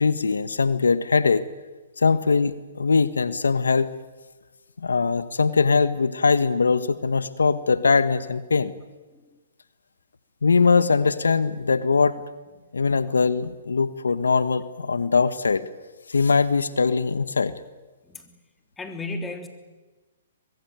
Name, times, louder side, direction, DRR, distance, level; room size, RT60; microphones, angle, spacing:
voice 1, 0.0-1.5 2.0-3.9 4.8-8.7 10.4-12.2 12.7-15.7 16.1-17.5, left 4 dB, 85° left, 14 dB, 1.3 m, -21 dB
voice 2, 18.0-18.4 18.8-19.5, left 2 dB, 10° left, 6 dB, 3.3 m, -34 dB
24.0 x 21.5 x 9.5 m, 1.2 s
hypercardioid pair, 135°, 0 cm